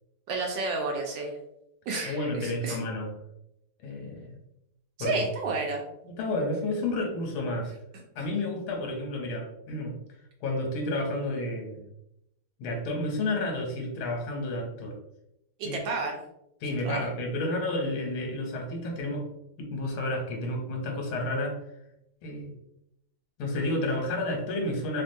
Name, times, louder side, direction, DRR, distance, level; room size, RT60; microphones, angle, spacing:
voice 1, 0.3-1.4 1.9-2.8 5.0-5.8 15.6-16.2 16.8-17.0, right 3 dB, 75° right, 1 dB, 1.1 m, -31 dB
voice 2, 2.0-3.1 3.8-4.4 5.0-5.2 6.0-7.7 8.1-10.0 10.4-11.8 12.6-15.0 15.6-15.8 16.6-19.3 19.6-21.6 22.2-22.5 23.4-25.0, left 1 dB, 75° left, 1 dB, 1.6 m, -31 dB
3.4 x 2.4 x 2.6 m, 0.82 s
omnidirectional pair, 2.4 m